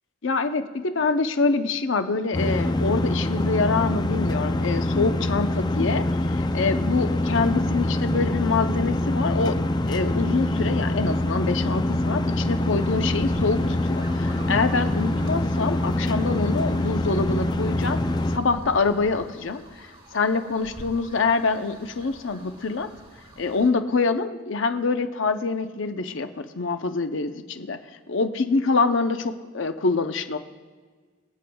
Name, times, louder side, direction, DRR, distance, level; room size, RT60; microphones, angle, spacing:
voice 1, 0.2-9.6 9.9-18.0 18.3-22.9 23.4-27.8 28.1-30.4, left 4 dB, 75° left, 8 dB, 0.7 m, -25 dB
sound 1, 2.3-18.4, left 1 dB, 20° left, 0.4 m, -24 dB
sound 2, 12.4-23.7, right 1 dB, 30° right, 1.5 m, -45 dB
26.0 x 8.7 x 2.3 m, 1.5 s
head